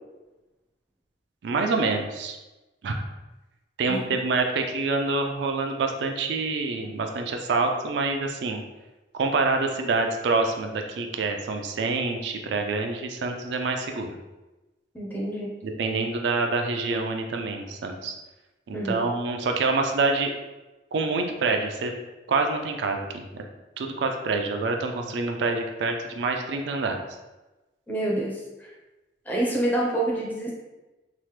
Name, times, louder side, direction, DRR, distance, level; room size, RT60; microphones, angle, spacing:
voice 1, 1.4-2.4 2.8-3.0 3.8-8.6 9.1-14.2 15.6-18.1 18.7-20.3 20.9-21.9 22.3-23.4 23.8-27.0, right 3 dB, 75° right, 4 dB, 0.3 m, -26 dB
voice 2, 14.9-15.5 18.7-19.0 27.9-28.7 29.3-30.5, right 1 dB, 10° left, -3 dB, 0.5 m, -27 dB
2.9 x 2.1 x 3.2 m, 1.1 s
head